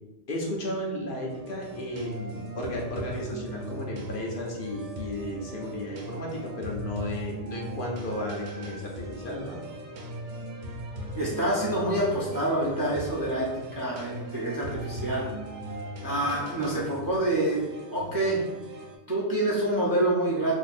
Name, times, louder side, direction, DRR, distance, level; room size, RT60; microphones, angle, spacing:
voice 1, 0.3-9.6, left 1 dB, 55° left, -2 dB, 0.7 m, -34 dB
sound 1, 1.3-19.0, right 1 dB, 85° right, 1.0 m, -39 dB
voice 2, 11.2-15.3 16.0-17.6 17.9-18.4 19.1-20.5, right 1 dB, 30° right, -5 dB, 0.4 m, -27 dB
2.7 x 2.5 x 4.0 m, 1.1 s
omnidirectional pair, 1.2 m